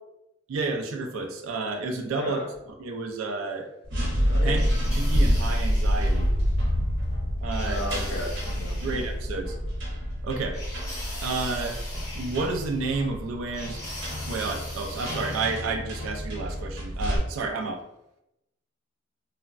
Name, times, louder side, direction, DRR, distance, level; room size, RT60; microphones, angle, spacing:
voice 1, 0.5-2.4 2.8-3.7 4.4-4.6 4.9-6.3 7.4-7.9 8.8-9.6 10.2-10.6 11.2-11.8 12.1-13.9 14.2-17.8, right 3 dB, 80° right, 4 dB, 0.3 m, -30 dB
voice 2, 2.2-2.5 4.2-4.6 7.7-8.8, left 1 dB, 55° left, 0 dB, 0.5 m, -33 dB
sound 1, 3.8-17.2, equal, 60° right, 0.7 m, -28 dB
sound 2, 4.5-6.3 7.5-9.1 10.5-12.9 13.5-15.7, left 1 dB, 15° left, 0.8 m, -41 dB
3.1 x 2.0 x 2.4 m, 0.86 s
head